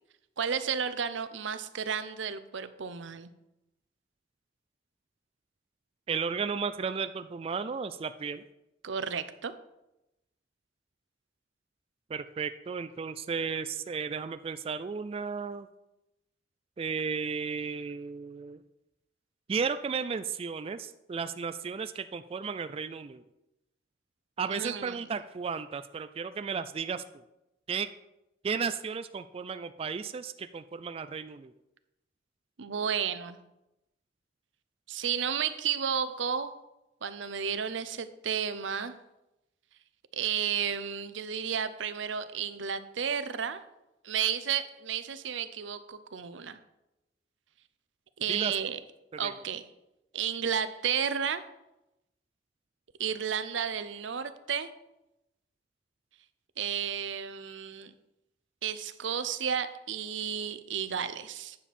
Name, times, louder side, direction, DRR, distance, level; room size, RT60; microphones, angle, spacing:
voice 1, 0.4-3.3 8.8-9.5 24.5-25.1 32.6-33.4 34.9-36.5 37.0-38.9 40.1-43.6 44.0-46.6 48.2-48.8 49.2-49.6 50.1-51.4 53.0-54.7 56.6-57.9 58.6-61.6, right 7 dB, 85° right, 12 dB, 0.6 m, -32 dB
voice 2, 6.1-8.4 12.1-15.7 16.8-18.6 19.5-23.2 24.4-27.0 27.7-27.9 28.4-31.5 48.3-48.5 49.2-49.3, right 5 dB, 30° right, 10 dB, 0.3 m, -34 dB
9.8 x 7.1 x 4.3 m, 0.91 s
head